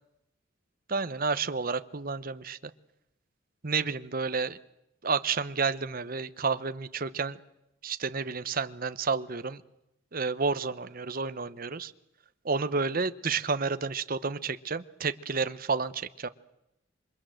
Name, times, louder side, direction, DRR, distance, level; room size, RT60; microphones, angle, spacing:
voice 1, 0.9-2.6 3.6-4.6 5.0-7.4 7.8-9.6 10.1-11.9 12.4-16.3, right 4 dB, 45° right, 12 dB, 0.9 m, -30 dB
28.0 x 24.0 x 7.9 m, 0.86 s
head